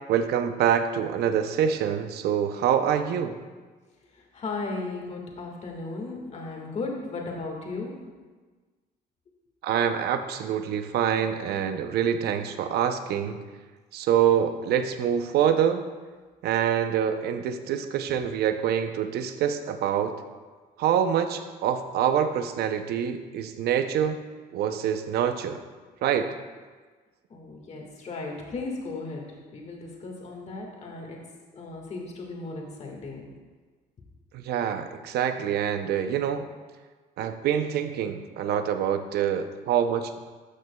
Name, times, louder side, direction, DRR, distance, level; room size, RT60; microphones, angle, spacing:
voice 1, 0.1-3.4 9.6-13.5 13.9-15.9 16.4-20.1 20.8-24.2 24.5-25.6 26.0-26.3 34.3-36.4 37.2-40.2, right 9 dB, 70° right, 9 dB, 0.6 m, -25 dB
voice 2, 4.3-8.0 27.3-31.3 31.5-33.3, left 3 dB, 40° left, 0 dB, 1.7 m, -36 dB
13.0 x 6.2 x 2.3 m, 1.4 s
cardioid pair, 110°, 17 cm